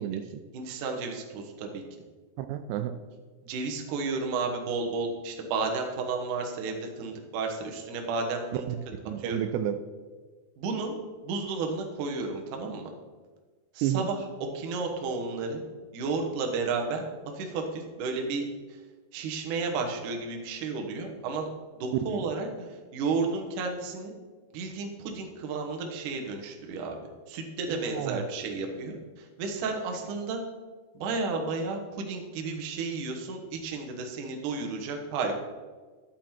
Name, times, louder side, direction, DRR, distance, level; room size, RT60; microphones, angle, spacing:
voice 1, 0.0-0.4 2.4-2.9 8.7-8.8 9.0-9.8 13.8-14.1 22.1-22.3 27.7-28.2, right 10 dB, 85° right, 9 dB, 2.7 m, -31 dB
voice 2, 0.5-1.8 3.4-8.7 9.2-9.4 10.6-12.9 13.7-14.2 14.5-15.6 15.9-17.1 17.3-18.4 18.7-18.8 19.1-21.5 21.8-24.1 24.5-27.0 27.3-30.4 30.9-35.4, right 4 dB, 65° right, 3 dB, 2.1 m, -32 dB
11.5 x 7.2 x 4.4 m, 1.4 s
omnidirectional pair, 5.0 m